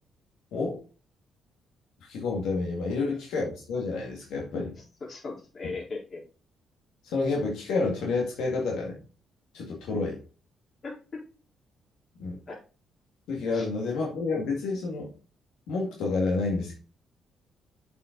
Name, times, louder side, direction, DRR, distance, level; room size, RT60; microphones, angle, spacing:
voice 1, 2.0-4.7 5.6-5.7 7.0-9.0 9.5-10.2 12.2-12.4 13.3-15.1 15.7-16.8, left 3 dB, 85° left, -1 dB, 2.1 m, -29 dB
voice 2, 5.0-6.2 10.8-11.2 12.5-12.6 13.5-13.7, left 3 dB, 45° left, -2 dB, 4.0 m, -38 dB
7.3 x 5.7 x 3.9 m, 0.35 s
cardioid pair, 90°, 0 cm